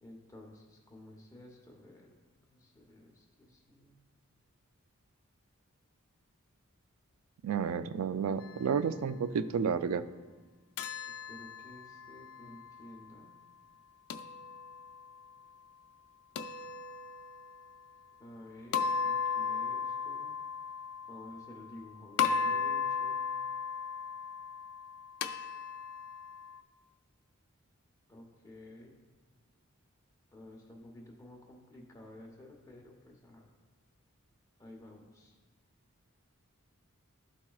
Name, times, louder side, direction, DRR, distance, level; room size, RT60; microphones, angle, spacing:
voice 1, 0.0-2.1 2.5-4.0 7.6-7.8 8.1-8.3 8.5-9.1 11.3-13.3 18.2-20.3 21.1-23.2 28.1-28.9 30.3-33.4 34.6-35.3, left 1 dB, 15° left, 0 dB, 0.8 m, -52 dB
voice 2, 7.4-10.0, right 6 dB, 85° right, 12 dB, 0.3 m, -31 dB
sound 1, 10.8-12.9 14.1-15.1 16.4-17.6 18.7-21.8 22.2-26.6, left 6 dB, 70° left, 0.3 m, -36 dB
12.5 x 4.3 x 2.3 m, 1.3 s
head